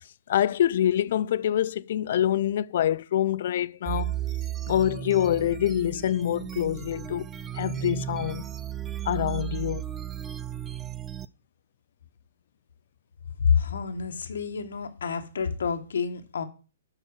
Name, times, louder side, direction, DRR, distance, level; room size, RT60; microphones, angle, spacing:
voice 1, 0.3-4.2 4.7-7.3 7.5-8.5 9.1-9.8, left 11 dB, 60° left, 0.4 m, -25 dB
sound 1, 3.9-11.3, right 11 dB, 15° right, 0.4 m, -34 dB
voice 2, 13.4-16.4, left 6 dB, 75° left, 1.3 m, -28 dB
8.1 x 4.4 x 6.4 m
hypercardioid pair, 140°, 0 cm